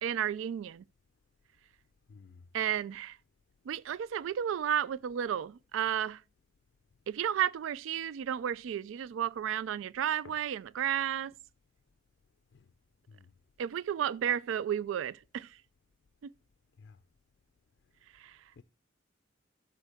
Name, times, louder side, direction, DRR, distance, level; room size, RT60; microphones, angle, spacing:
voice 1, 0.0-0.8 2.5-3.2 3.7-6.2 7.1-11.3 13.6-15.6 16.2-16.3 18.1-18.4, right 9 dB, 85° right, 0.3 m, -32 dB
voice 2, 2.1-2.4 10.2-10.3 12.5-12.7 13.1-13.3 16.8-17.0 18.6-18.7, left 5 dB, 60° left, 0.4 m, -53 dB
12.5 x 5.9 x 3.4 m
head